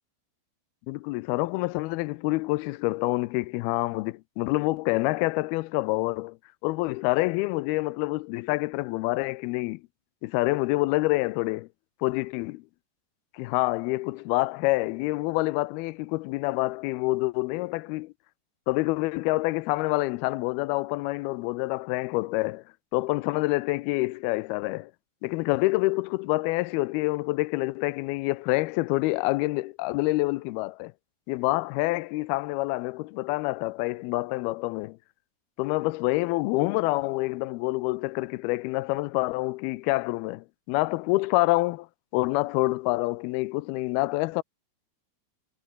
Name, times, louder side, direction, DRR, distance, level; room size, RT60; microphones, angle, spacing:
voice 1, 0.9-6.4 6.6-9.8 10.2-11.7 12.0-12.6 13.3-18.1 18.7-22.6 22.9-24.9 25.2-30.9 31.3-35.0 35.6-41.9 42.1-44.4, left 21 dB, 90° left, 2.5 m, -27 dB
omnidirectional pair, 4.4 m